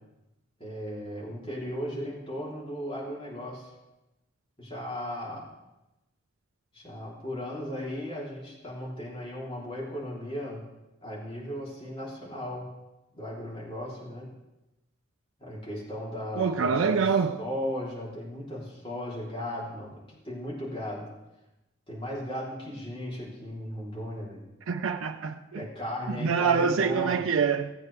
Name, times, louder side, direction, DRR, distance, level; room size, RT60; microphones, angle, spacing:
voice 1, 0.6-3.7 4.6-5.5 6.7-10.7 11.0-12.7 13.1-14.3 15.4-21.1 21.9-24.5 25.5-27.3, left 1 dB, 25° left, 3.3 m, -36 dB
voice 2, 16.4-17.4 24.7-25.6 26.2-27.7, right 6 dB, 85° right, 0.5 m, -25 dB
17.0 x 8.3 x 3.3 m
head